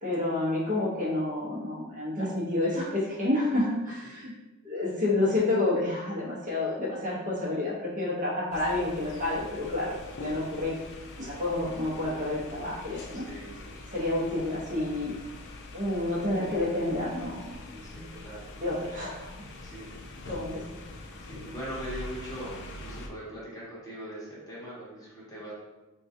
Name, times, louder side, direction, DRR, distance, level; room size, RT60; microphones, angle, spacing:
voice 1, 0.0-4.3 4.6-9.9 10.2-10.7 11.2-13.2 13.9-15.1 15.7-18.1 18.6-19.3 20.3-20.6, left 2 dB, 40° right, -6 dB, 0.9 m, -29 dB
sound 1, 8.5-23.1, left 2 dB, 55° left, 0.4 m, -44 dB
voice 2, 13.1-13.8 17.8-18.4 19.6-20.0 21.0-25.5, equal, 15° left, -7 dB, 1.0 m, -41 dB
3.7 x 2.3 x 2.6 m, 1.1 s
head